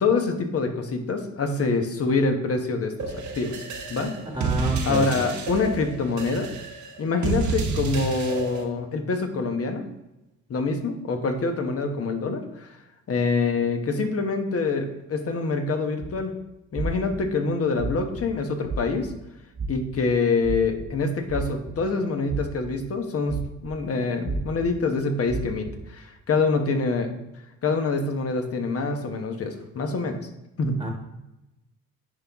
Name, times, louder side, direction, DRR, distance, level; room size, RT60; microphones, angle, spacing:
voice 1, 0.0-4.1 4.8-6.5 7.0-9.8 10.5-12.7 13.1-16.3 16.7-19.1 19.7-27.1 27.6-30.2 30.6-30.8, left 3 dB, 50° left, 5 dB, 1.3 m, -25 dB
sound 1, 3.0-8.6, right 4 dB, 70° right, 1.1 m, -30 dB
voice 2, 4.3-5.4 30.8-30.9, right 1 dB, 15° right, 1 dB, 1.4 m, -28 dB
sound 2, 16.0-16.2 16.8-17.2 17.8-18.2 18.6-19.1 19.6-20.0 20.4-20.9 21.3-21.9 22.3-22.7 23.3-23.7 24.3-24.7 25.3-25.7, right 3 dB, 40° right, 1.0 m, -31 dB
10.5 x 4.0 x 3.6 m, 0.94 s
cardioid pair, 90°, 30 cm